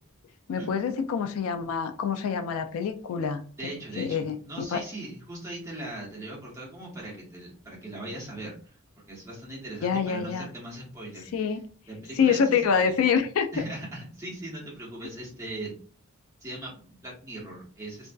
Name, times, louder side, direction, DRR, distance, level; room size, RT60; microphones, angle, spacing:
voice 1, 0.5-3.4 4.0-4.8 9.8-10.5 11.3-11.6 12.2-13.6, left 6 dB, 75° left, 8 dB, 0.3 m, -26 dB
voice 2, 3.6-8.8 9.1-11.3 11.9-12.9 13.5-15.7 16.4-18.1, right 1 dB, 15° right, -5 dB, 1.0 m, -39 dB
2.5 x 2.3 x 2.2 m, 0.42 s
head